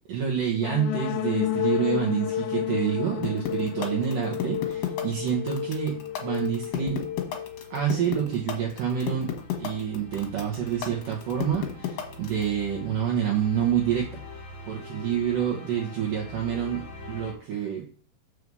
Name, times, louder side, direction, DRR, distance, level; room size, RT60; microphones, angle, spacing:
voice 1, 0.1-7.0 7.7-17.9, right 9 dB, 75° right, -2 dB, 1.9 m, -28 dB
sound 1, 0.6-8.3, left 11 dB, 90° left, 3.2 m, -31 dB
sound 2, 3.2-12.4, left 11 dB, 65° left, 2.9 m, -31 dB
sound 3, 4.5-17.3, left 2 dB, 35° left, 2.0 m, -45 dB
6.8 x 4.8 x 6.8 m, 0.42 s
omnidirectional pair, 5.8 m